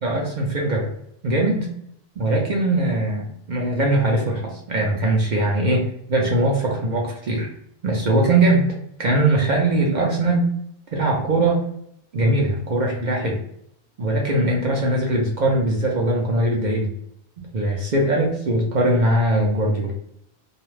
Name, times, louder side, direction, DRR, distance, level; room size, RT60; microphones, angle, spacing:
voice 1, 0.0-0.9 1.2-1.7 2.2-7.5 7.8-8.7 9.0-10.5 10.9-11.6 12.1-13.4 14.0-16.9 17.5-19.9, right 1 dB, 55° right, -1 dB, 0.6 m, -21 dB
2.3 x 2.1 x 3.0 m, 0.72 s
omnidirectional pair, 1.1 m